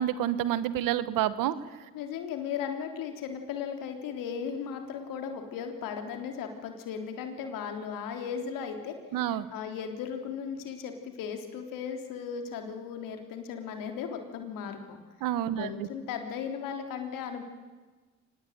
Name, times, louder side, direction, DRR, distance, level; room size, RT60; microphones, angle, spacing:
voice 1, 0.0-1.5 9.1-9.5 15.2-15.9, right 11 dB, 90° right, 15 dB, 1.3 m, -28 dB
voice 2, 1.9-9.0 9.2-15.0 15.6-17.4, left 7 dB, 90° left, 5 dB, 3.5 m, -36 dB
25.0 x 20.0 x 9.3 m, 1.3 s
supercardioid pair, 55°, 32 cm